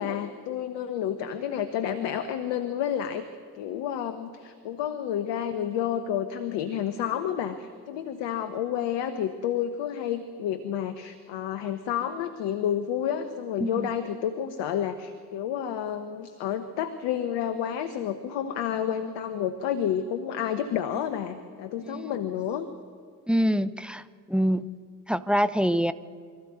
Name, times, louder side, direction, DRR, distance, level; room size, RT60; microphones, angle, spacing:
voice 1, 0.0-3.3 3.6-22.7, left 9 dB, 65° left, 10 dB, 1.3 m, -30 dB
voice 2, 23.3-24.7 25.1-25.9, equal, ahead, 14 dB, 1.0 m, -25 dB
24.5 x 14.0 x 9.5 m, 2.1 s
figure-of-eight pair, 40°, 47 cm